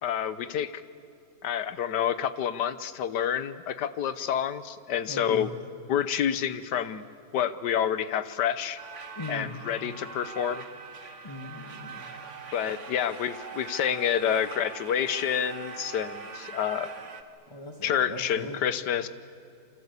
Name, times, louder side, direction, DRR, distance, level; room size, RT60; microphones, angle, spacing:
voice 1, 0.0-0.8 1.4-5.5 5.9-7.0 7.3-8.8 9.3-10.6 12.5-16.9 17.8-19.1, left 9 dB, 85° left, 14 dB, 1.6 m, -28 dB
voice 2, 5.1-5.5 9.1-9.5 11.2-12.1 17.5-18.6, left 2 dB, 15° left, 3 dB, 1.7 m, -39 dB
sound 1, 8.8-17.2, right 5 dB, 50° right, 1.7 m, -42 dB
28.5 x 25.5 x 8.3 m, 2.5 s
omnidirectional pair, 1.8 m